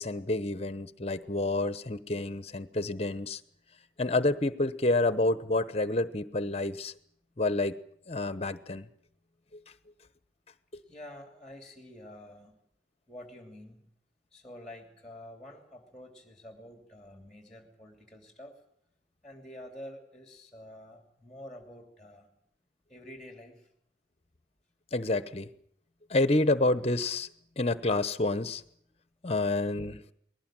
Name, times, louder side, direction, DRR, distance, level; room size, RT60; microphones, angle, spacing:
voice 1, 0.0-3.4 4.0-6.9 7.4-7.7 8.1-8.9 24.9-25.5 26.1-27.3 27.6-28.6 29.2-30.0, left 2 dB, 35° left, 14 dB, 1.0 m, -28 dB
voice 2, 10.9-12.6 13.1-13.9 14.3-18.6 19.2-22.3 22.9-23.7, left 1 dB, 5° left, 4 dB, 2.9 m, -48 dB
20.5 x 18.0 x 8.9 m, 0.69 s
head